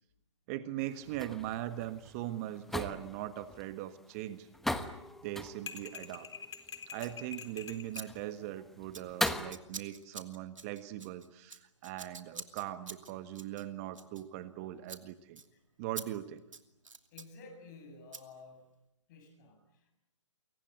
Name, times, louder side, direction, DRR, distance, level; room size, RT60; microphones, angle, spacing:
voice 1, 0.5-4.5 5.2-6.3 6.9-15.4 15.8-16.4, right 13 dB, 30° right, 11 dB, 1.5 m, -40 dB
sound 1, 0.8-9.5, left 1 dB, ahead, 1.1 m, -40 dB
sound 2, 5.7-8.1, left 6 dB, 60° left, 3.8 m, -45 dB
Scissors, 6.9-7.2 7.9-8.1 8.3-8.6 8.9-14.6 14.8-15.0 15.4-15.5 16.0-16.1 16.4-17.3 18.1-18.2, right 4 dB, 85° right, 2.7 m, -47 dB
voice 2, 17.1-18.6 19.1-19.9, left 3 dB, 35° left, 5 dB, 6.9 m, -52 dB
29.0 x 23.5 x 8.0 m, 0.89 s
hypercardioid pair, 140°, 16 cm